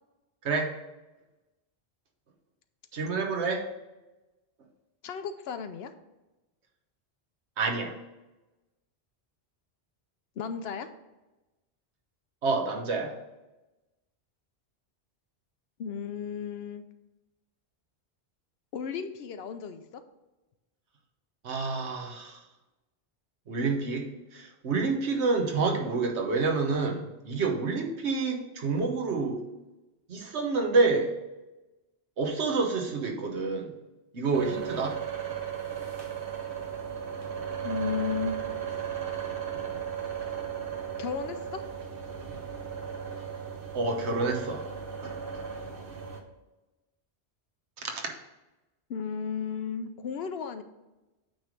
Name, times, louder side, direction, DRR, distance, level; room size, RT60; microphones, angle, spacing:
voice 1, 2.9-3.7 7.6-7.9 12.4-13.1 21.4-22.4 23.5-24.1 24.3-29.4 30.1-31.1 32.2-33.7 34.1-35.0 43.7-44.6 45.0-45.4 47.8-48.0, right 4 dB, 80° right, 2 dB, 1.4 m, -28 dB
voice 2, 5.0-5.9 10.4-10.9 15.8-16.8 18.7-20.0 37.6-38.4 41.0-41.6 48.9-50.6, left 6 dB, 70° left, 9 dB, 0.8 m, -34 dB
sound 1, 34.3-46.2, right 8 dB, 55° right, 1.0 m, -36 dB
8.7 x 3.2 x 5.1 m, 1.1 s
omnidirectional pair, 1.1 m